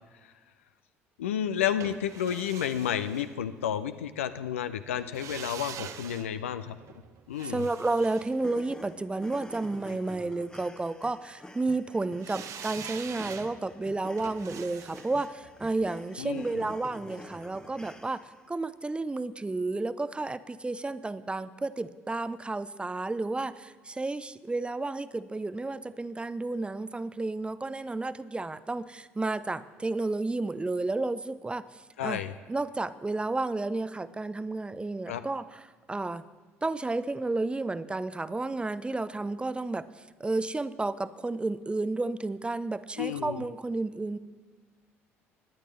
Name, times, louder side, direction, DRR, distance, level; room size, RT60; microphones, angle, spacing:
voice 1, 1.2-6.8 7.3-7.7 16.2-16.7 32.0-32.3 35.1-35.2 43.0-43.4, left 9 dB, 80° left, 11 dB, 0.5 m, -31 dB
sound 1, 1.8-3.9 5.0-9.2 12.2-17.2 17.5-17.6, right 8 dB, 50° right, 0.7 m, -45 dB
voice 2, 7.5-18.2 18.5-32.2 32.5-36.2 36.6-39.9 40.2-44.2, right 2 dB, 15° right, 15 dB, 0.5 m, -32 dB
sound 2, 8.3-18.5, left 1 dB, 10° left, 0.9 m, -48 dB
19.0 x 10.0 x 3.3 m, 1.5 s
figure-of-eight pair, 55°, 7 cm